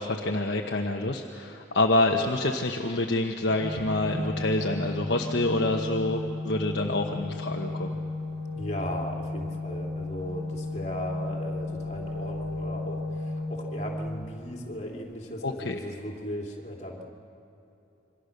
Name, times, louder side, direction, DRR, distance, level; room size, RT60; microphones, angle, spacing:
voice 1, 0.0-8.0 15.4-15.8, left 2 dB, 55° left, 2 dB, 1.2 m, -27 dB
Organ, 3.5-14.4, left 2 dB, 75° right, 3.6 m, -34 dB
voice 2, 8.5-17.0, equal, 35° left, 0 dB, 3.1 m, -37 dB
27.0 x 24.5 x 6.7 m, 2.8 s
head